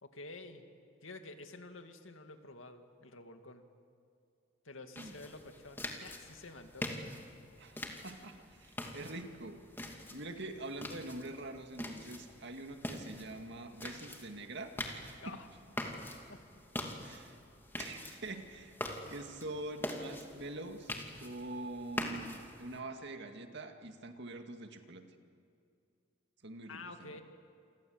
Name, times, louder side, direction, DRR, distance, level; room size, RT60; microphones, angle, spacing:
voice 1, 0.0-0.6 1.0-3.6 4.6-7.1 15.2-15.5 16.3-16.4 19.0-19.2 26.7-27.2, left 3 dB, 90° left, 6 dB, 2.3 m, -50 dB
sound 1, 5.0-22.8, left 1 dB, 10° left, 2.5 m, -44 dB
voice 2, 7.6-9.6 10.1-15.4 17.0-17.4 17.8-18.8 19.1-20.9 21.2-25.0 26.4-27.1, right 2 dB, 60° right, 5 dB, 2.2 m, -45 dB
28.5 x 25.0 x 8.0 m, 2.4 s
head